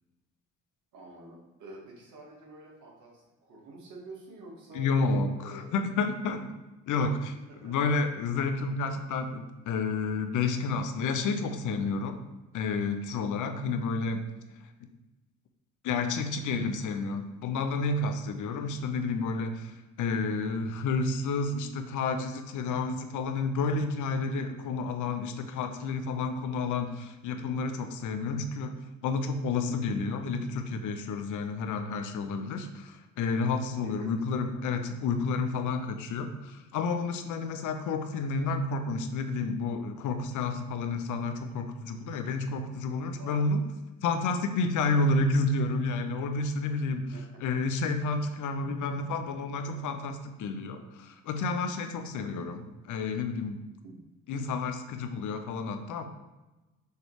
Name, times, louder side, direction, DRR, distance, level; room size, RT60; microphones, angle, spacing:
voice 1, 0.9-4.9 5.4-5.8 7.4-7.8 33.7-34.5 43.2-43.6 47.1-47.2 53.8-54.0, right 2 dB, 75° right, -3 dB, 2.2 m, -48 dB
voice 2, 4.7-6.5 6.9-7.3 7.6-12.2 12.5-14.2 15.8-43.6 44.0-47.1 47.4-53.6 54.3-56.0, left 3 dB, 80° left, 7 dB, 0.8 m, -30 dB
6.7 x 3.3 x 4.8 m, 1.1 s
cardioid pair, 90°, 30 cm